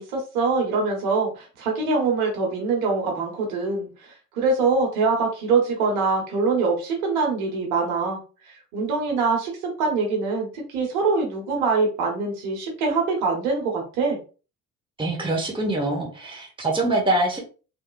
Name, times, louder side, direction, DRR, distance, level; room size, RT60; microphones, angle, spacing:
voice 1, 0.0-8.2 8.5-9.5 9.8-14.2, right 4 dB, 80° right, 0 dB, 1.5 m, -24 dB
voice 2, 15.0-17.4, right 2 dB, 10° right, -1 dB, 1.2 m, -24 dB
3.4 x 2.8 x 2.4 m, 0.35 s
hypercardioid pair, 55°, 44 cm